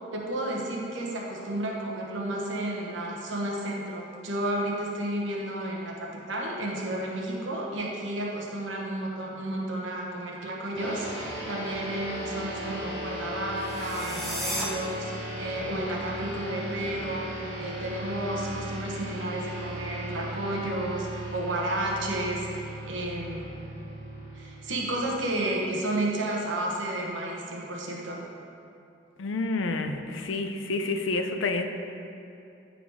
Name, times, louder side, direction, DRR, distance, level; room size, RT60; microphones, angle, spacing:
voice 1, 0.1-23.5 24.3-28.2, right 1 dB, 80° right, -2 dB, 1.0 m, -32 dB
sound 1, 10.8-25.6, right 1 dB, 25° left, 1.7 m, -37 dB
sound 2, 13.6-14.6, equal, ahead, 0.7 m, -34 dB
voice 2, 29.2-31.7, left 3 dB, 85° left, 6 dB, 0.5 m, -29 dB
9.2 x 3.9 x 4.6 m, 2.7 s
head